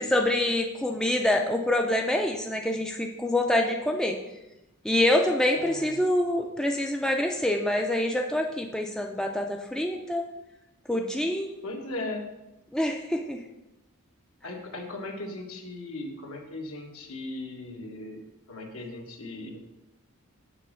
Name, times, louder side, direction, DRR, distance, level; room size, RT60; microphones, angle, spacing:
voice 1, 0.0-4.2 4.8-10.3 10.9-11.6 12.7-13.4, left 1 dB, 5° left, 2 dB, 0.4 m, -26 dB
voice 2, 5.5-5.9 11.6-12.2 14.4-18.2 18.5-19.6, left 2 dB, 70° left, 2 dB, 1.3 m, -37 dB
6.8 x 4.0 x 6.3 m, 0.95 s
head